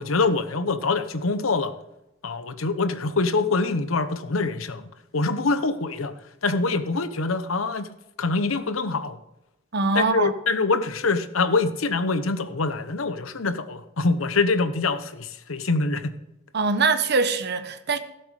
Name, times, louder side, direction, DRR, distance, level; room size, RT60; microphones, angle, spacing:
voice 1, 0.0-1.7 2.2-4.8 5.1-6.1 6.4-7.9 8.2-9.2 9.9-16.1, left 3 dB, 80° left, 1.0 m, -24 dB
voice 2, 9.7-10.3 16.5-18.0, right 4 dB, 55° right, 1.1 m, -23 dB
16.5 x 8.0 x 4.9 m
head